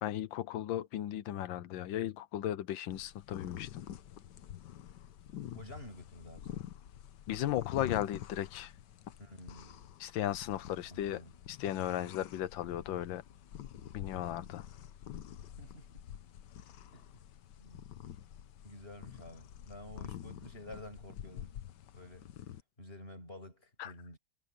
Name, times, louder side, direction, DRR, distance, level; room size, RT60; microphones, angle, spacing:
voice 1, 0.0-3.7 7.3-8.7 10.0-11.2 11.5-13.2 13.9-14.7 23.8-23.9, left 12 dB, 90° left, 1.5 m, -36 dB
sound 1, 2.9-22.6, left 11 dB, 70° left, 1.5 m, -47 dB
voice 2, 5.5-6.7 9.2-9.8 10.8-11.4 15.6-16.1 16.9-17.1 17.6-18.0 18.6-21.6 21.9-22.3 22.8-24.2, left 1 dB, 30° left, 8.1 m, -50 dB
omnidirectional pair, 2.1 m